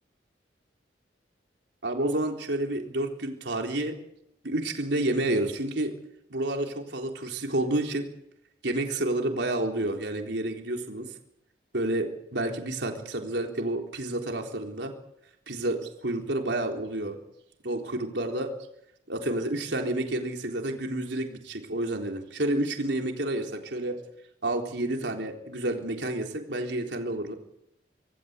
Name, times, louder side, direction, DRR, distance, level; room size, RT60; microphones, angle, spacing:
voice 1, 1.8-3.9 4.4-5.9 6.3-8.0 8.6-11.1 11.7-14.9 15.5-17.2 17.6-18.5 19.1-23.9 24.4-27.3, right 1 dB, 75° right, 2 dB, 3.8 m, -29 dB
26.5 x 18.0 x 8.2 m, 0.81 s
head